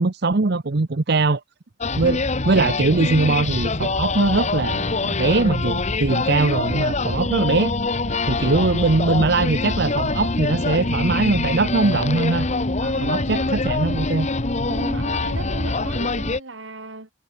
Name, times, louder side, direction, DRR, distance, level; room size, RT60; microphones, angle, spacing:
voice 1, 0.0-1.4 2.0-7.7 8.3-12.5 13.0-14.3, right 3 dB, 60° right, 0.8 m, -21 dB
sound 1, 1.8-16.4, left 3 dB, 40° left, 1.2 m, -24 dB
voice 2, 12.8-13.5 14.7-17.1, right 2 dB, 85° right, 3.1 m, -36 dB
head